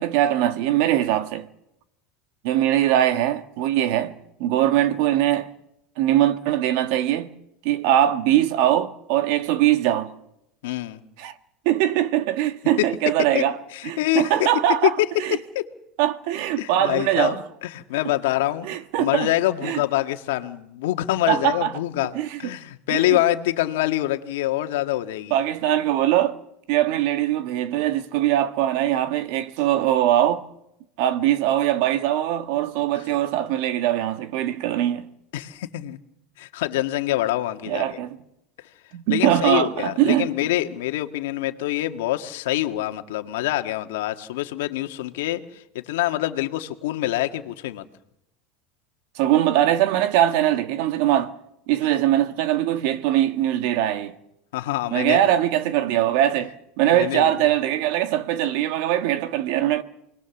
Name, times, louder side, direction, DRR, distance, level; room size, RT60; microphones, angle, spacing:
voice 1, 0.0-1.5 2.4-5.5 6.0-7.3 7.6-10.1 11.2-11.3 11.6-13.6 13.8-15.4 16.0-17.4 18.6-19.3 19.6-19.8 21.3-21.7 22.1-22.4 22.9-23.1 25.3-26.4 26.7-30.4 31.0-35.1 37.6-38.2 38.9-40.3 49.1-51.3 51.7-54.2 54.9-59.8, right 12 dB, 65° right, 1.5 m, -21 dB
voice 2, 10.6-11.0 13.3-13.4 13.7-14.3 15.5-15.7 16.6-18.7 19.0-22.1 22.4-25.3 35.3-36.0 36.4-37.8 39.1-45.4 45.7-47.8 54.5-55.2 56.9-57.3, left 15 dB, 80° left, 1.7 m, -25 dB
28.5 x 20.5 x 7.2 m
supercardioid pair, 125°, 0 cm